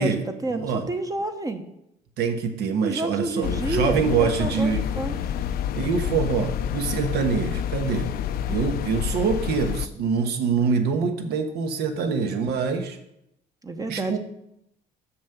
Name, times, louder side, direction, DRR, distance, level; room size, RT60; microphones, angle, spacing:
voice 1, 0.0-1.6 2.8-5.2 13.6-14.2, right 2 dB, 20° right, 6 dB, 0.8 m, -29 dB
voice 2, 0.5-0.8 2.2-4.8 5.7-8.1 8.5-13.0 13.9-14.2, right 5 dB, 75° right, 7 dB, 1.3 m, -25 dB
sound 1, 3.4-9.9, left 9 dB, 65° left, 0.5 m, -28 dB
7.2 x 6.3 x 6.9 m, 0.82 s
cardioid pair, 110°, 17 cm